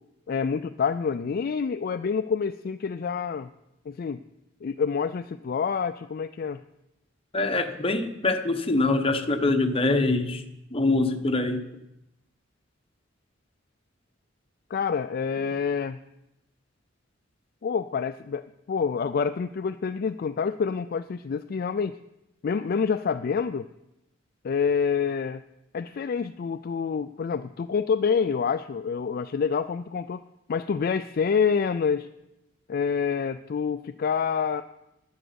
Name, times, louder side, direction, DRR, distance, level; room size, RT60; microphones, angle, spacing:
voice 1, 0.3-3.5 3.9-4.2 4.6-6.6 14.7-16.0 17.6-22.0 22.4-23.7 24.4-25.4 25.7-30.2 30.5-32.1 32.7-34.6, left 6 dB, 50° left, 10 dB, 0.4 m, -27 dB
voice 2, 7.3-10.4 10.7-11.6, left 2 dB, 30° left, 7 dB, 1.0 m, -24 dB
10.5 x 9.9 x 6.9 m, 0.89 s
head